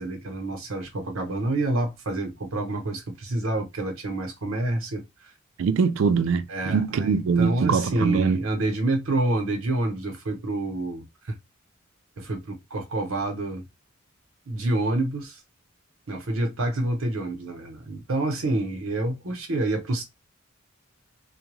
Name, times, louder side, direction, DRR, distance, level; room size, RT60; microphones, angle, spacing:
voice 1, 0.0-5.3 6.5-11.4 12.2-13.7 14.5-15.4 16.1-20.0, right 2 dB, 90° right, 0.9 m, -28 dB
voice 2, 5.6-8.4, right 5 dB, 70° right, 0.3 m, -23 dB
2.3 x 2.2 x 3.0 m
head